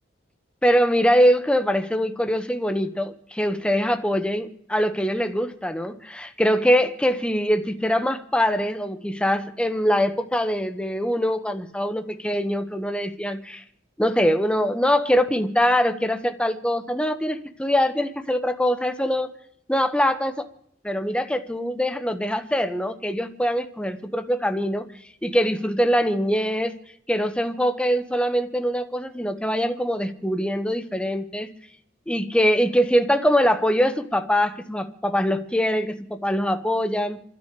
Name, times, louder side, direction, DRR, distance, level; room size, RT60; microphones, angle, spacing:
voice 1, 0.6-13.6 14.0-19.3 19.7-20.5 20.8-24.9 25.2-26.8 27.1-31.5 32.1-37.2, equal, 5° left, 1.0 m, -23 dB
28.5 x 12.5 x 3.3 m
head